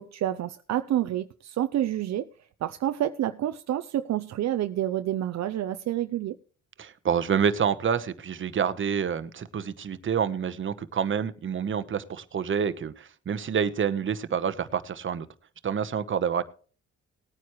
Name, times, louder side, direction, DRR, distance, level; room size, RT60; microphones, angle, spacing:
voice 1, 0.0-2.3 2.6-6.3, right 12 dB, 60° right, 0.6 m, -28 dB
voice 2, 6.8-15.3 15.6-16.4, right 7 dB, 40° right, 1.1 m, -28 dB
19.0 x 9.4 x 3.1 m
cardioid pair, 90°, 30 cm